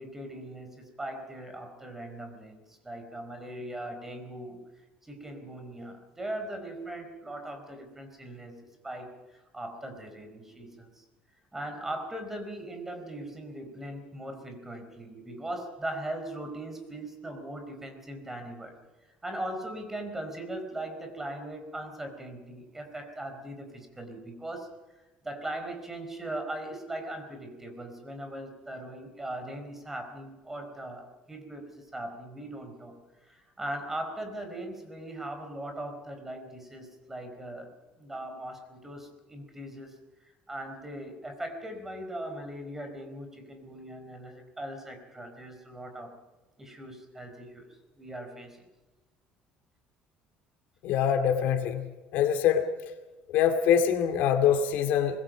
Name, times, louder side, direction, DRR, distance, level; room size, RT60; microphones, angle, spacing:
voice 1, 0.0-4.6 5.0-8.6 8.8-11.0 11.5-18.8 19.0-24.7 25.2-37.7 38.0-39.9 40.2-46.1 46.6-47.7 48.0-48.6, right 1 dB, 10° right, 5 dB, 4.4 m, -39 dB
voice 2, 50.8-51.8 52.1-52.6 53.3-55.2, left 8 dB, 70° left, 6 dB, 2.3 m, -24 dB
25.5 x 21.0 x 5.2 m, 1.2 s
cardioid pair, 150°, 3 cm